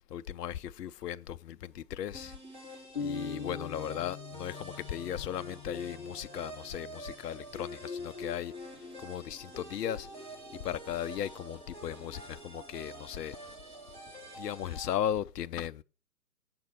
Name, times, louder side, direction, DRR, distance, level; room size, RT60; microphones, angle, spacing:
voice 1, 0.0-13.5 14.4-15.8, left 10 dB, 70° left, 0.6 m, -37 dB
sound 1, 1.6-14.4, left 1 dB, 90° right, 1.9 m, -60 dB
sound 2, 2.1-14.9, equal, 20° right, 3.9 m, -46 dB
sound 3, 2.9-6.7, left 5 dB, 40° left, 1.1 m, -41 dB
7.7 x 5.1 x 6.5 m
figure-of-eight pair, 135°, 49 cm